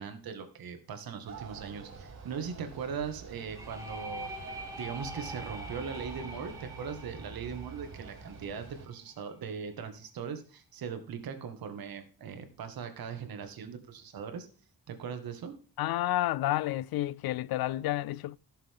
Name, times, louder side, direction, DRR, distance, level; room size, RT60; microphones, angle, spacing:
voice 1, 0.0-4.3 4.8-14.5 14.9-15.5, right 6 dB, 75° right, 2.1 m, -39 dB
sound 1, 1.2-8.9, right 4 dB, 50° right, 3.9 m, -47 dB
sound 2, 3.5-9.2, right 1 dB, 10° right, 1.7 m, -44 dB
voice 2, 15.8-18.4, left 15 dB, 85° left, 0.5 m, -30 dB
15.0 x 6.9 x 3.8 m
wide cardioid pair, 165°, 36 cm